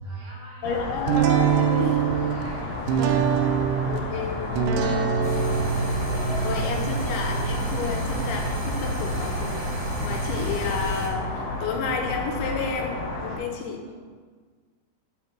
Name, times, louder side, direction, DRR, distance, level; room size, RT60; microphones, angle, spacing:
voice 1, 0.0-0.7 2.1-4.9 5.7-7.2 13.2-14.0, right 2 dB, 45° right, -6 dB, 1.4 m, -49 dB
voice 2, 0.6-2.0 3.8-4.7 6.4-9.6 10.0-13.8, left 5 dB, 80° left, 2 dB, 2.4 m, -31 dB
sound 1, 0.6-13.4, left 2 dB, 65° left, 2.6 m, -32 dB
sound 2, 1.1-12.5, right 7 dB, 90° right, 2.9 m, -27 dB
sound 3, 5.2-11.1, equal, 65° right, 1.9 m, -31 dB
11.0 x 4.4 x 3.0 m, 1.5 s
omnidirectional pair, 5.0 m